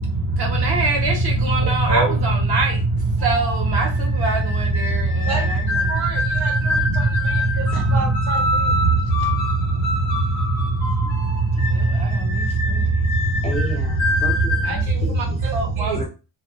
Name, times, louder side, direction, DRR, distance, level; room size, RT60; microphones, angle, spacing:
voice 1, 0.0-5.9 6.2-6.3 6.7-8.2 9.3-9.4 9.7-10.2 10.6-10.7 11.2-12.5 12.7-12.8 13.3-13.6 14.3-15.9, right 2 dB, 50° right, 1.0 m, -21 dB
sound 1, 3.2-14.8, left 2 dB, 75° left, 0.9 m, -27 dB
voice 2, 5.9-8.8 14.7-16.0, right 4 dB, 80° right, 0.9 m, -29 dB
voice 3, 13.1-15.6 15.9-16.0, left 1 dB, 15° left, 0.4 m, -34 dB
2.7 x 2.3 x 2.5 m
cardioid pair, 165°, 48 cm